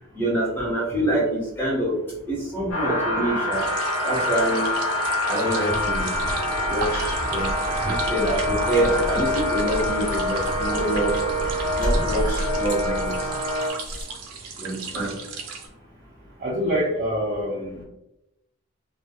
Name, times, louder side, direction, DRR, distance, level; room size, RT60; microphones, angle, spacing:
voice 1, 0.2-1.9 2.3-3.6 4.0-4.6 5.2-6.1 6.7-7.5 7.8-11.1 11.8-13.2 14.6-15.1, right 1 dB, 10° left, -6 dB, 0.7 m, -26 dB
sound 1, 2.7-13.7, left 1 dB, 80° left, 0.6 m, -26 dB
sound 2, 3.5-15.7, right 5 dB, 85° right, 0.5 m, -37 dB
sound 3, 5.7-14.0, equal, 40° left, 0.8 m, -31 dB
voice 2, 16.4-17.8, equal, 35° right, -5 dB, 0.4 m, -26 dB
2.2 x 2.1 x 2.8 m, 0.90 s
head